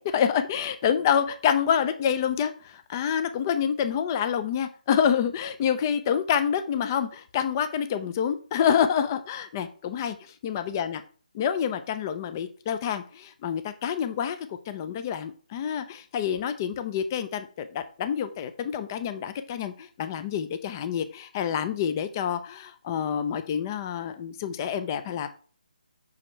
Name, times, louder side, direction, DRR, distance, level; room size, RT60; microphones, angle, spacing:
voice 1, 0.1-11.0 11.3-14.4 14.7-25.3, left 8 dB, 25° left, 10 dB, 0.5 m, -27 dB
5.9 x 4.9 x 4.5 m, 0.41 s
figure-of-eight pair, 160°, 5 cm